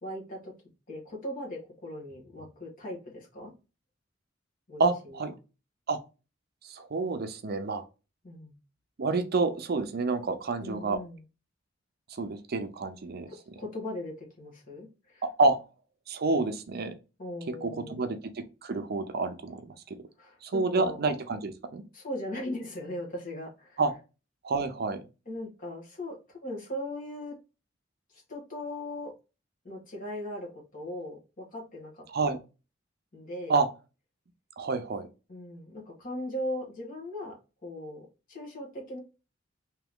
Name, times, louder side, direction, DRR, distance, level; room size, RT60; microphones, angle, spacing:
voice 1, 0.0-0.5 0.9-3.5 4.7-5.3 8.2-8.6 10.6-11.2 13.2-15.2 17.2-18.1 20.2-21.0 21.9-23.8 25.2-27.3 28.1-29.1 29.6-32.4 33.1-33.6 35.3-37.4 37.6-39.0, left 1 dB, 45° left, -2 dB, 1.6 m, -39 dB
voice 2, 4.8-5.3 5.9-6.0 6.7-7.8 9.0-11.0 12.2-13.3 15.2-15.6 16.1-16.9 17.5-19.6 19.9-20.0 20.4-21.8 23.8-23.9 24.4-25.0 32.1-32.4 33.5-33.7 34.6-35.1, right 3 dB, 55° right, 8 dB, 0.5 m, -28 dB
3.4 x 2.9 x 3.5 m, 0.31 s
head